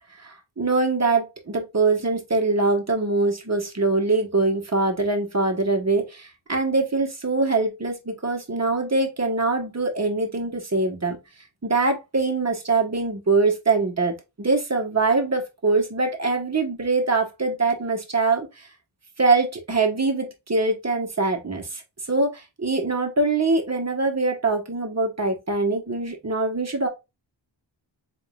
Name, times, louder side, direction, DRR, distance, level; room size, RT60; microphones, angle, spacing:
voice 1, 0.2-11.2 11.6-18.7 19.2-21.8 22.1-26.9, right 3 dB, 35° right, 1.3 m, -23 dB
4.3 x 3.7 x 2.3 m
wide cardioid pair, 55°, 45 cm